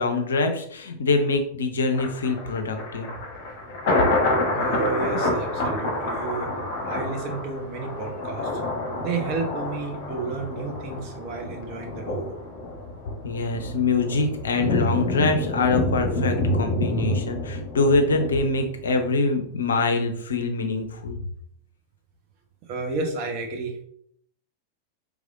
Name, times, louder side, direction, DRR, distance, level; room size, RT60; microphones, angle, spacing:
voice 1, 0.0-3.1 13.2-21.2, left 3 dB, 70° left, 6 dB, 0.6 m, -24 dB
Thunder, 1.9-19.1 19.4-19.5, left 1 dB, 50° left, 1.1 m, -28 dB
voice 2, 4.5-6.5 6.9-8.5 9.0-12.3 22.7-23.8, right 4 dB, 40° right, 2 dB, 1.0 m, -31 dB
4.8 x 3.4 x 2.5 m, 0.65 s
figure-of-eight pair, 90°, 0 cm